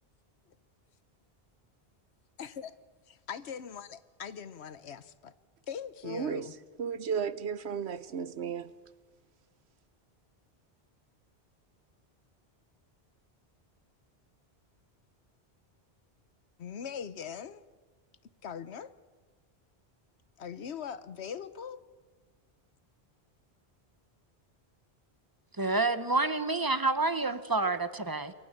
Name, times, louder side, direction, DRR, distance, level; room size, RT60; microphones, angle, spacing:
voice 1, 2.4-2.7 3.1-5.3 5.7-6.5 16.6-17.6 18.4-18.9 20.4-21.8, left 7 dB, 85° left, 1.2 m, -41 dB
voice 2, 6.0-8.7, right 7 dB, 85° right, 1.1 m, -34 dB
voice 3, 25.6-28.3, right 3 dB, 20° right, 0.9 m, -28 dB
28.0 x 22.0 x 6.7 m
omnidirectional pair, 1.1 m